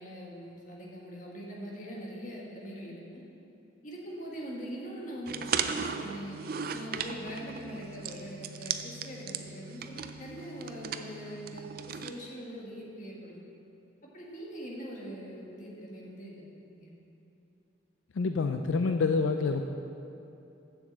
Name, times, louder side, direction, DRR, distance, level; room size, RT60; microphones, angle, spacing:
voice 1, 0.0-3.2 3.8-6.4 6.7-13.4 14.1-16.3 16.7-16.9, equal, 40° left, -3 dB, 1.7 m, -42 dB
sound 1, 5.3-12.1, right 6 dB, 50° right, 0.4 m, -37 dB
voice 2, 18.1-19.6, left 4 dB, 80° left, 6 dB, 0.4 m, -27 dB
7.3 x 7.0 x 7.4 m, 2.8 s
head